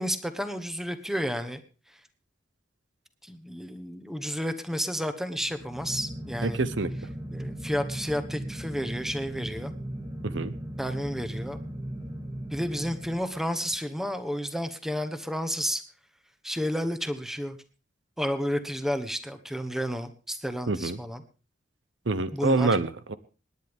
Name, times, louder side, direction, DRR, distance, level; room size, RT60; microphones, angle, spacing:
voice 1, 0.0-1.6 3.2-6.6 7.3-9.7 10.8-11.6 12.5-15.8 16.4-17.6 18.2-21.2 22.3-22.8, equal, ahead, 10 dB, 1.2 m, -31 dB
sound 1, 5.4-13.7, right 1 dB, 25° right, 2.4 m, -37 dB
voice 2, 6.4-6.9 10.2-10.5 20.7-21.0 22.1-23.1, right 3 dB, 80° right, 14 dB, 0.9 m, -26 dB
26.5 x 10.5 x 3.6 m, 0.35 s
head